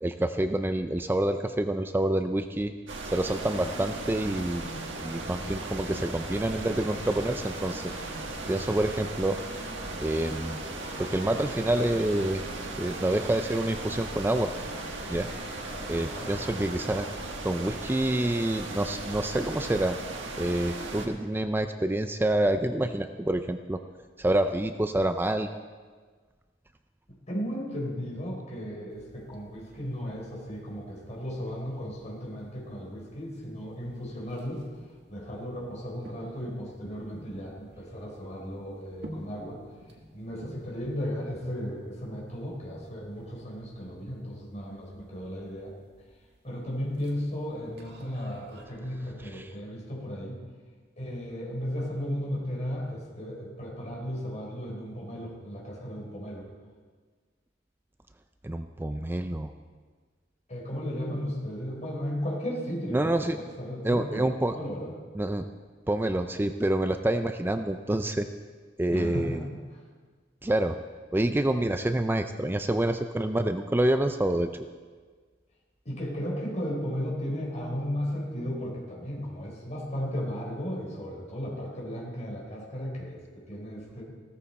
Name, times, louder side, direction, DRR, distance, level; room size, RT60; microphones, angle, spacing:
voice 1, 0.0-2.7 3.1-4.7 5.0-7.8 8.5-9.4 10.0-10.6 11.0-12.4 12.8-14.5 15.1-15.3 15.9-17.1 17.4-20.0 20.4-23.8 24.2-25.5 49.3-49.5 58.4-59.5 62.9-63.4 63.8-64.6 65.2-65.5 65.9-68.3 68.8-69.4 70.4-70.8 71.1-74.5, right 1 dB, 10° right, 8 dB, 0.4 m, -27 dB
sound 1, 2.9-21.1, right 2 dB, 80° right, 1.6 m, -37 dB
sound 2, 3.2-18.6, equal, 60° left, 5.2 m, -46 dB
voice 2, 15.7-16.3 27.3-34.6 35.1-39.6 40.1-45.7 46.4-50.4 51.0-56.5 60.5-64.9 68.9-69.8 75.8-84.0, equal, 40° left, -3 dB, 3.9 m, -35 dB
sound 3, 28.9-48.6, equal, 65° right, 1.9 m, -53 dB
16.0 x 14.0 x 4.2 m, 1.5 s
head